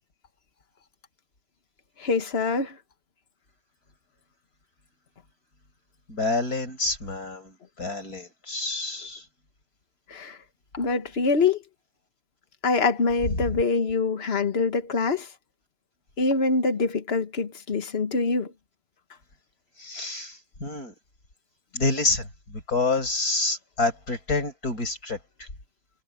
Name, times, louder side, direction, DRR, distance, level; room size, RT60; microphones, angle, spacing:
voice 1, 2.0-2.8 10.1-10.4 10.7-11.6 12.6-15.3 16.2-18.5, left 4 dB, 45° left, 1.7 m, -24 dB
voice 2, 6.1-9.2 13.5-13.6 19.8-20.9 21.7-25.5, left 3 dB, 90° left, 7.5 m, -28 dB
omnidirectional pair, 1.5 m